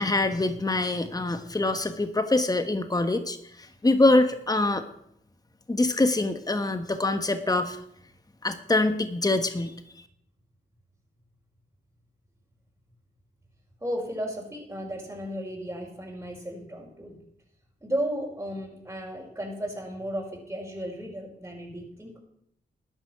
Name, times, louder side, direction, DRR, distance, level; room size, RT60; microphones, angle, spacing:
voice 1, 0.0-4.9 5.7-7.8 8.4-9.7, left 2 dB, 20° left, 8 dB, 1.3 m, -24 dB
voice 2, 13.8-17.2 17.8-22.2, equal, 15° right, -2 dB, 5.1 m, -34 dB
13.5 x 9.8 x 5.9 m, 0.73 s
cardioid pair, 55°, 19 cm